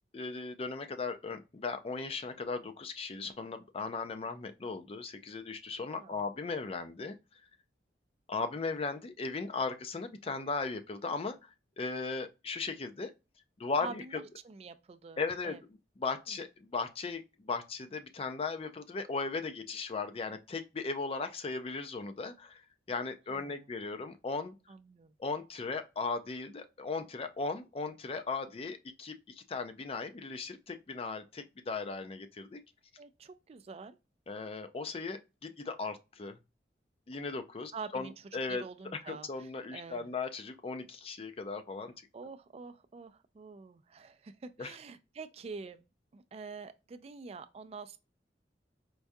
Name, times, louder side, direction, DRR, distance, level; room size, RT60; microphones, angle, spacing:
voice 1, 0.1-7.2 8.3-13.1 13.6-14.2 15.2-15.6 16.0-22.6 22.9-24.5 25.2-32.6 34.3-36.4 37.1-38.6 38.9-41.9 44.6-44.7, left 4 dB, 35° left, 0.4 m, -37 dB
voice 2, 5.9-6.2 13.8-15.6 16.3-16.4 23.3-23.7 24.7-25.1 33.0-34.0 37.7-38.1 38.5-40.1 42.1-45.8 46.1-48.0, right 4 dB, 35° right, 0.3 m, -46 dB
4.6 x 2.2 x 2.6 m
head